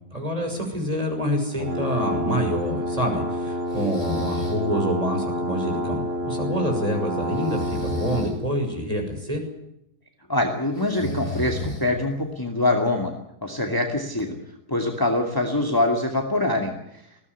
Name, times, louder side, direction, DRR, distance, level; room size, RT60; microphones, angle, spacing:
voice 1, 0.1-9.4, equal, 20° right, 3 dB, 6.5 m, -27 dB
sound 1, 1.6-8.3, equal, 50° right, 4.1 m, -28 dB
Breathing, 3.7-4.6 7.3-8.3 10.7-12.1, left 1 dB, 35° left, 7.8 m, -33 dB
voice 2, 10.3-13.1 13.4-14.3 14.7-16.7, left 2 dB, 15° left, 2 dB, 2.6 m, -24 dB
21.0 x 17.5 x 9.7 m, 0.80 s
omnidirectional pair, 1.6 m